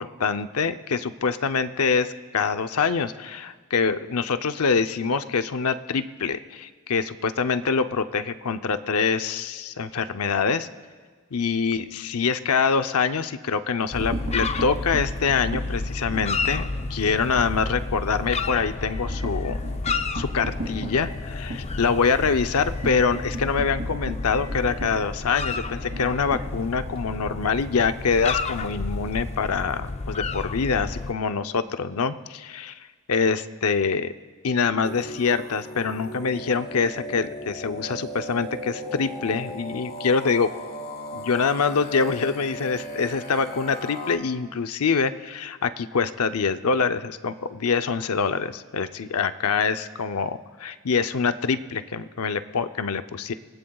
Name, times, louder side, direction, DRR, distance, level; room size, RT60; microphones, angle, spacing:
voice 1, 0.0-10.7 11.3-19.6 20.1-32.8 33.1-34.1 34.4-40.5 41.1-53.3, left 5 dB, 85° left, 9 dB, 0.7 m, -25 dB
sound 1, 13.8-17.0 17.4-17.5 17.8-17.9 18.3-27.1, right 1 dB, 70° right, 2.4 m, -37 dB
sound 2, 13.9-31.1, left 3 dB, 30° left, 0.5 m, -31 dB
sound 3, 34.8-44.2, equal, 45° left, 1.5 m, -36 dB
27.5 x 19.0 x 2.4 m, 1.5 s
head